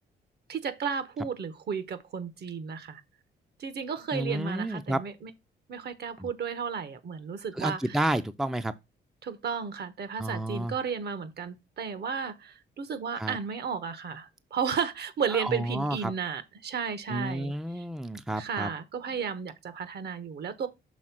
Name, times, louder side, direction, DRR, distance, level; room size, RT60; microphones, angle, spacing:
voice 1, 0.5-3.0 3.6-5.3 5.7-8.0 9.2-17.8 18.4-20.7, right 6 dB, 55° right, 1.1 m, -33 dB
voice 2, 4.1-5.0 6.2-6.3 7.6-8.7 10.2-10.7 13.2-13.4 15.3-16.1 17.1-18.7, right 1 dB, ahead, 0.5 m, -30 dB
6.4 x 3.4 x 5.9 m
cardioid pair, 90°, 20 cm